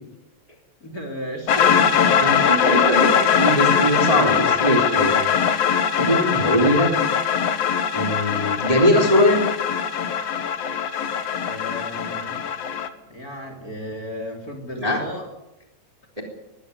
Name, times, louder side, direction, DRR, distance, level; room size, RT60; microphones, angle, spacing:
voice 1, 0.8-3.0 11.5-12.4 13.1-15.3, equal, 30° left, 4 dB, 3.8 m, -34 dB
sound 1, 1.5-12.9, left 7 dB, 60° left, 2.3 m, -21 dB
voice 2, 2.2-5.3 5.9-6.9 7.9-9.4 14.8-15.0, equal, 10° right, 2 dB, 3.2 m, -21 dB
22.5 x 15.0 x 9.8 m, 0.93 s
omnidirectional pair, 3.3 m